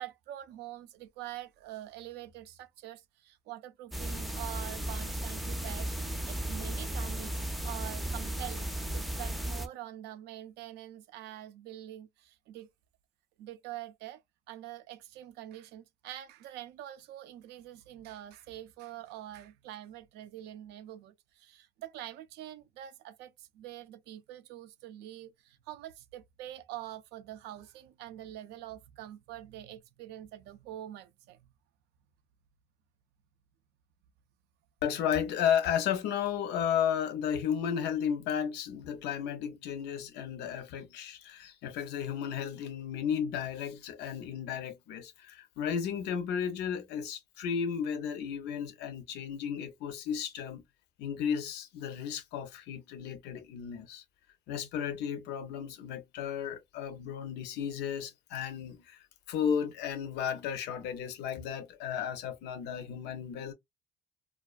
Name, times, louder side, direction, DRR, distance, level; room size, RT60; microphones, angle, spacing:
voice 1, 0.0-5.9 6.3-8.7 8.9-12.7 13.4-14.2 14.5-31.5, right 13 dB, 85° right, 0.4 m, -45 dB
sound 1, 3.9-9.7, right 1 dB, ahead, 0.4 m, -35 dB
voice 2, 34.8-50.6 51.0-54.0 54.5-63.5, left 8 dB, 80° left, 0.6 m, -34 dB
2.4 x 2.2 x 2.3 m
cardioid pair, 110°, 17 cm